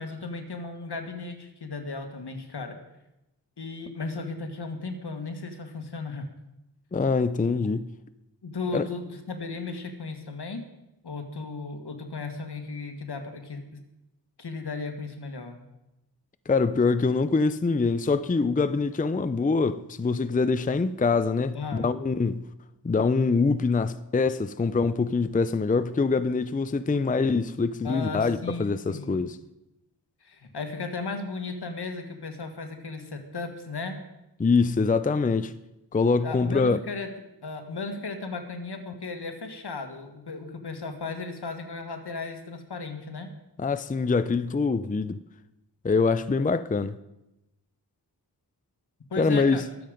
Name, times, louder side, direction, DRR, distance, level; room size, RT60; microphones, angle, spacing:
voice 1, 0.0-2.8 3.6-6.3 7.6-7.7 8.4-10.6 11.0-13.8 14.4-15.6 21.5-21.9 27.8-29.3 30.2-34.0 36.2-37.1 37.4-43.3 49.1-49.7, left 3 dB, 75° left, 1.8 m, -35 dB
voice 2, 6.9-7.9 8.7-8.8 16.5-22.5 22.8-29.4 34.4-35.5 35.9-36.8 43.6-45.2 45.8-47.0 49.2-49.6, left 4 dB, 20° left, 0.5 m, -24 dB
22.0 x 7.7 x 5.2 m
wide cardioid pair, 75°, 40 cm